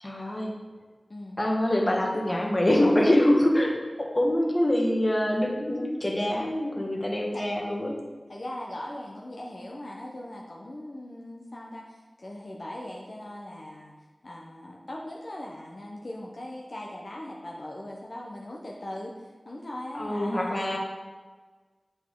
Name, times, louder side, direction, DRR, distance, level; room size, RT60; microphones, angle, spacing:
voice 1, 0.0-0.5 1.4-7.9 19.9-20.8, left 1 dB, 30° left, 0 dB, 1.3 m, -25 dB
voice 2, 8.3-13.9 14.2-20.8, left 1 dB, 60° left, -2 dB, 0.8 m, -40 dB
8.1 x 5.3 x 3.7 m, 1.4 s
wide cardioid pair, 70°, 0 cm